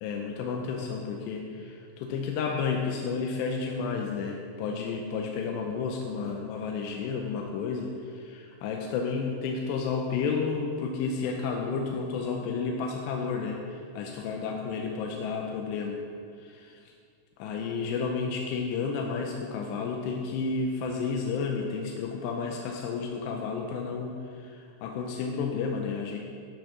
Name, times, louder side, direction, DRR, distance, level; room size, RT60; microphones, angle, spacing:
voice 1, 0.0-16.0 16.4-16.9 17.4-26.2, left 5 dB, 85° left, 1 dB, 2.9 m, -31 dB
12.5 x 6.4 x 5.9 m, 2.3 s
omnidirectional pair, 4.8 m